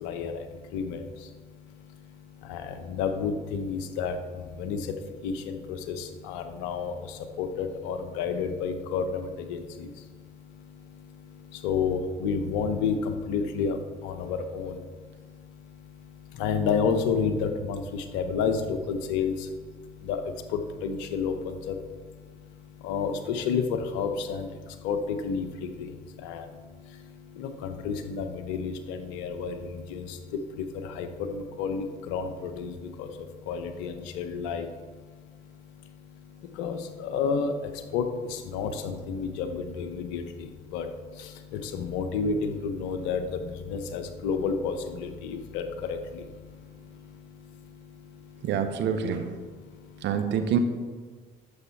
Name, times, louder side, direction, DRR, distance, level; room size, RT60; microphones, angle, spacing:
voice 1, 0.0-48.8 49.4-50.2, left 5 dB, 80° left, 8 dB, 0.9 m, -32 dB
voice 2, 48.4-49.3 50.0-50.6, right 7 dB, 65° right, 9 dB, 1.1 m, -26 dB
10.5 x 7.2 x 4.1 m, 1.5 s
hypercardioid pair, 60°, 20 cm